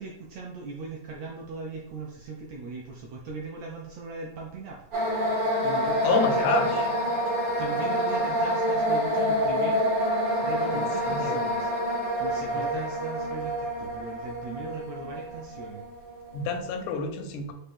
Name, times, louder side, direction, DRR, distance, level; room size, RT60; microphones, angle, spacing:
voice 1, 0.0-4.9 5.6-9.9 10.4-11.7 12.2-15.8, right 3 dB, 80° right, -1 dB, 1.6 m, -38 dB
sound 1, 4.9-16.8, equal, 65° right, 0.8 m, -27 dB
voice 2, 6.0-6.8 10.7-11.4 12.5-12.7 16.3-17.5, left 5 dB, 80° left, 5 dB, 1.9 m, -29 dB
5.5 x 2.5 x 3.4 m, 0.85 s
omnidirectional pair, 3.7 m